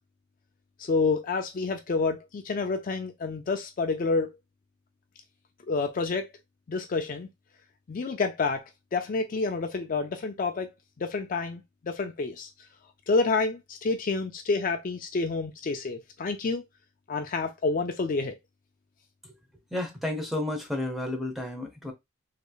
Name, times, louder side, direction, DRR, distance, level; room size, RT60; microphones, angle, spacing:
voice 1, 0.8-4.3 5.7-6.3 6.7-7.3 7.9-10.7 11.0-12.5 13.1-16.6 17.1-18.4, left 4 dB, 40° left, 0.4 m, -28 dB
voice 2, 19.7-21.9, left 1 dB, ahead, 0.8 m, -32 dB
3.2 x 3.1 x 2.3 m
head